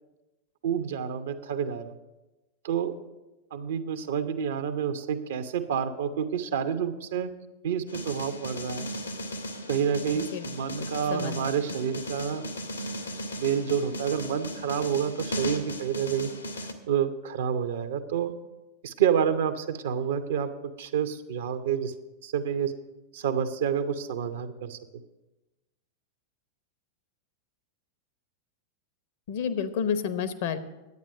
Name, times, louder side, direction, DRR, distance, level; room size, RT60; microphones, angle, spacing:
voice 1, 0.6-2.0 2.6-2.9 3.5-7.3 7.6-8.9 9.7-12.5 13.4-16.3 16.9-18.3 18.8-20.5 20.8-21.9 22.2-22.7 23.1-24.8, right 8 dB, 60° right, 9 dB, 0.8 m, -28 dB
sound 1, 7.9-16.7, equal, 80° left, 1.2 m, -36 dB
voice 2, 29.3-30.6, left 7 dB, 55° left, 12 dB, 0.8 m, -29 dB
10.5 x 8.9 x 6.4 m, 1.1 s
figure-of-eight pair, 90°, 0 cm